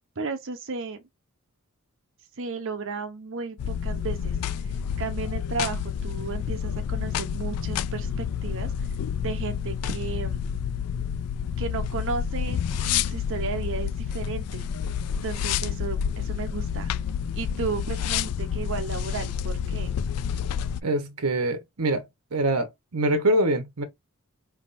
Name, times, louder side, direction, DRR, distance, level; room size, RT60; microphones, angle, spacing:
voice 1, 0.2-1.0 2.4-4.4 5.0-8.7 9.2-10.4 11.6-14.7 15.2-16.9 17.3-19.9, right 4 dB, 60° right, 0.7 m, -34 dB
sound 1, 3.6-20.8, left 8 dB, 90° left, 0.4 m, -29 dB
voice 2, 20.8-23.8, right 1 dB, 85° right, 1.0 m, -25 dB
5.0 x 3.4 x 2.5 m
head